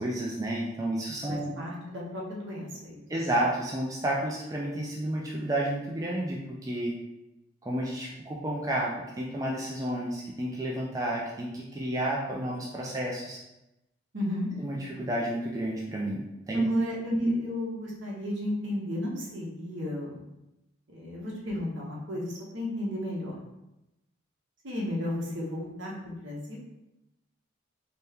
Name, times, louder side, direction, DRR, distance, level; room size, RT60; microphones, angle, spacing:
voice 1, 0.0-1.6 3.1-6.9 7.6-13.4 14.6-16.9 17.2-17.3, right 1 dB, 15° right, -3 dB, 0.3 m, -31 dB
voice 2, 1.3-3.0 14.1-14.5 16.5-20.2 20.9-23.4 24.6-26.6, left 1 dB, 70° right, -3 dB, 1.0 m, -34 dB
4.1 x 2.1 x 3.5 m, 0.92 s
head